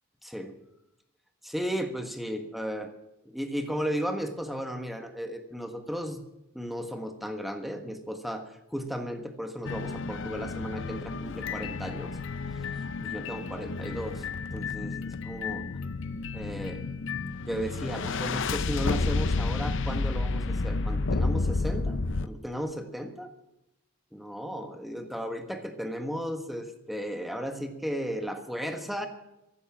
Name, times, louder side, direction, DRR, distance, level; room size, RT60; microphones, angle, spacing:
voice 1, 0.2-0.5 1.4-2.9 3.2-6.2 6.5-8.4 8.7-12.2 13.0-14.2 14.5-15.6 16.3-16.9 17.5-22.0 22.2-23.3 24.1-29.1, equal, ahead, 6 dB, 1.4 m, -35 dB
sound 1, 9.6-22.3, left 3 dB, 60° left, 0.7 m, -31 dB
15.0 x 11.0 x 7.3 m, 0.91 s
head